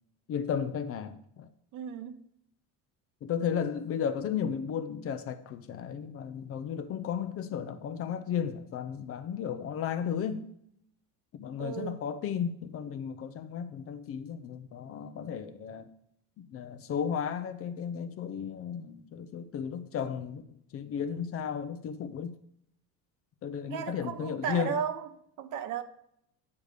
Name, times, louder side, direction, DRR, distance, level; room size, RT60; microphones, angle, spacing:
voice 1, 0.3-1.5 3.2-10.5 11.4-15.9 16.4-20.4 20.7-22.3 23.4-24.8, left 7 dB, 40° left, 0.6 m, -34 dB
voice 2, 1.7-2.2 11.6-12.0 23.7-25.1 25.4-25.8, right 8 dB, 55° right, 0.8 m, -35 dB
9.5 x 5.2 x 5.0 m
cardioid pair, 150°, 36 cm